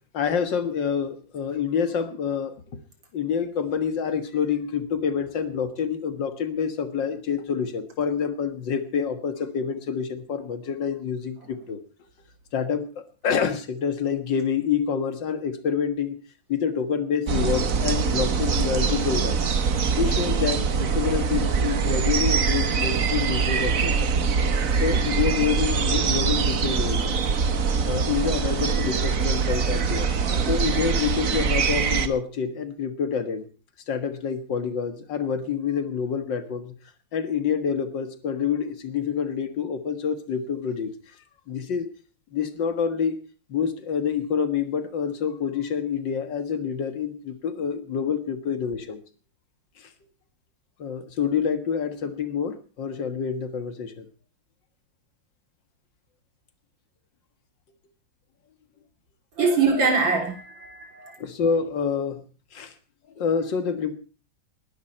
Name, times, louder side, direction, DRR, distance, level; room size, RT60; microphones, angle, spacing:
voice 1, 0.1-2.5 3.1-11.8 12.5-16.2 16.5-19.4 20.0-24.1 24.8-27.2 27.9-30.1 30.5-33.5 33.9-36.7 37.1-40.9 41.5-41.9 42.3-43.2 43.5-49.0 49.8-49.9 50.8-54.1 61.2-62.2 62.5-62.7 63.2-63.9, left 7 dB, 70° left, 10 dB, 2.2 m, -27 dB
sound 1, 17.3-32.1, right 5 dB, 50° right, 1.5 m, -23 dB
voice 2, 30.2-30.6 59.4-61.2, right 4 dB, 75° right, 5 dB, 4.3 m, -24 dB
20.0 x 12.0 x 4.3 m, 0.36 s
omnidirectional pair, 2.1 m